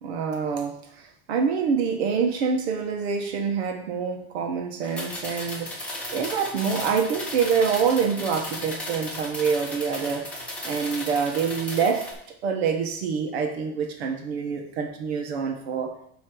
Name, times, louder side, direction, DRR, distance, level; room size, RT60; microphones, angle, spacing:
voice 1, 0.0-5.7 6.1-10.3 10.6-12.1 12.4-15.9, right 6 dB, 75° right, 4 dB, 1.3 m, -26 dB
sound 1, 4.8-12.1, left 1 dB, 5° left, 1.0 m, -35 dB
7.8 x 3.1 x 6.1 m, 0.69 s
supercardioid pair, 170°, 32 cm